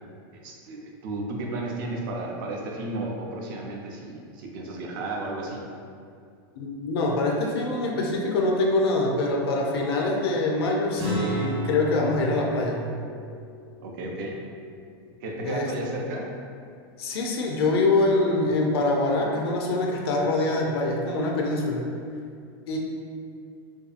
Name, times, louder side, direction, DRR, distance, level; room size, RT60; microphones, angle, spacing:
voice 1, 0.3-5.6 13.8-14.4 15.2-16.3, right 2 dB, 55° right, 0 dB, 0.4 m, -33 dB
voice 2, 6.6-12.9 15.5-15.7 17.0-21.9 22.7-22.8, left 2 dB, 85° left, 0 dB, 0.4 m, -24 dB
sound 1, 11.0-15.6, right 1 dB, 90° right, 0.8 m, -34 dB
2.6 x 2.3 x 2.4 m, 2.3 s
supercardioid pair, 155°, 13 cm